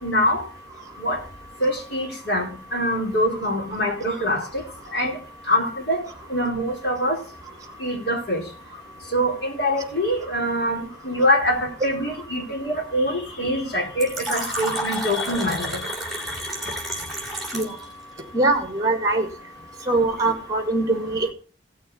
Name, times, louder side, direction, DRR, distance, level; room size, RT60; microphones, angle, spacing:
voice 1, 0.0-0.5 1.0-1.2 1.6-4.6 4.9-5.2 5.5-7.2 7.8-8.4 9.1-15.9 16.2-17.0, equal, 60° left, -1 dB, 3.9 m, -24 dB
Fill (with liquid), 14.0-17.8, right 1 dB, ahead, 2.9 m, -30 dB
voice 2, 18.3-19.3 19.9-21.3, right 2 dB, 20° right, 6 dB, 1.9 m, -22 dB
17.0 x 6.7 x 3.9 m, 0.36 s
head